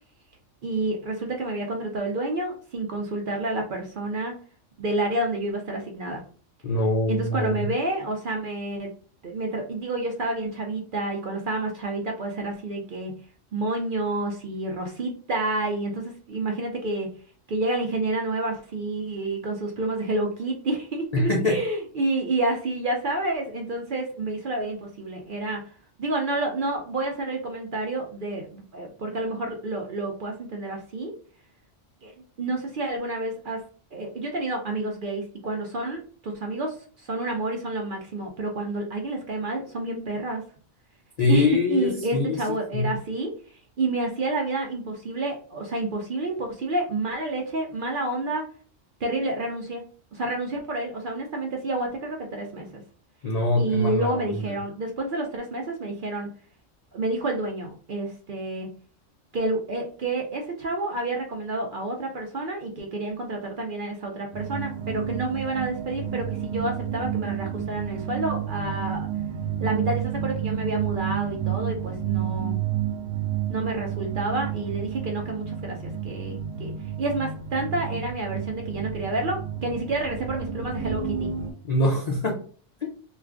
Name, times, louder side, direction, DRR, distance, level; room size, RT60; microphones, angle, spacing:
voice 1, 0.6-4.3 4.8-6.2 7.1-8.9 9.2-13.1 13.5-17.1 17.5-25.6 26.0-31.1 32.0-32.1 32.4-33.6 33.9-40.4 41.3-48.4 49.0-49.8 50.1-52.8 53.5-56.3 56.9-58.7 59.3-69.1 69.6-72.6 73.5-76.7 77.0-81.3, right 2 dB, 60° right, 1 dB, 0.6 m, -29 dB
voice 2, 6.6-7.7 21.1-21.6 41.2-42.4 42.7-42.9 53.2-54.3 81.7-82.4 82.8-82.9, left 2 dB, 60° left, 0 dB, 0.4 m, -23 dB
sound 1, 64.3-81.5, right 9 dB, 80° right, 1.0 m, -30 dB
2.4 x 2.4 x 3.3 m, 0.43 s
omnidirectional pair, 1.3 m